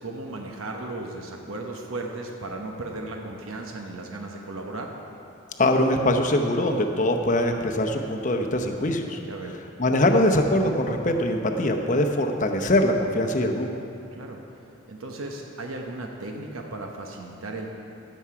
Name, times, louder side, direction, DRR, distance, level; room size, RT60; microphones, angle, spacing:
voice 1, 0.0-4.9 9.3-9.6 14.1-14.4 14.9-17.7, right 2 dB, 80° right, 1 dB, 1.0 m, -35 dB
voice 2, 5.6-9.2 9.8-13.7, left 1 dB, 35° left, 3 dB, 0.7 m, -22 dB
15.5 x 7.2 x 4.8 m, 2.8 s
head